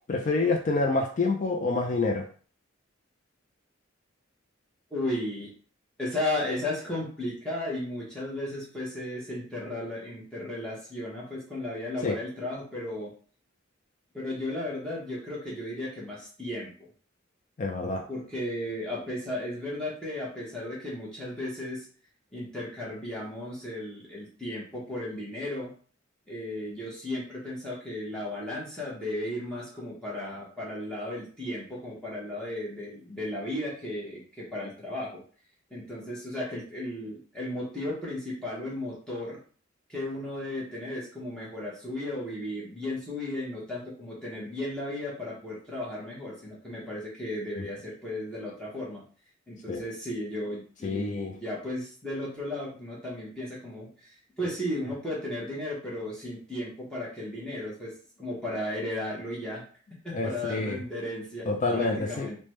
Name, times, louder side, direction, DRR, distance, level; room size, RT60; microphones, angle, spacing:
voice 1, 0.1-2.3 12.0-12.2 17.6-18.0 49.7-49.8 50.8-51.3 60.1-60.8 61.5-62.3, left 3 dB, 40° left, 2 dB, 0.3 m, -27 dB
voice 2, 4.9-5.5 6.0-13.1 14.1-16.7 18.1-21.9 22.3-25.7 26.3-35.2 35.7-39.4 39.9-49.0 49.5-57.9 58.2-59.6 60.0-62.4, left 1 dB, 5° left, -7 dB, 0.8 m, -35 dB
3.2 x 2.1 x 3.0 m, 0.43 s
head